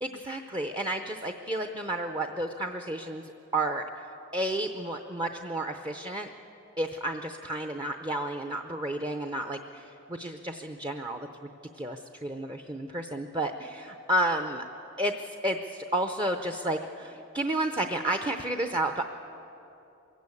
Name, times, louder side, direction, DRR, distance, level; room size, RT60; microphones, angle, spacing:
voice 1, 0.0-3.9 4.3-6.3 6.8-11.3 11.8-14.6 15.0-19.0, right 1 dB, 20° right, 6 dB, 0.7 m, -31 dB
23.5 x 16.5 x 8.4 m, 2.9 s
head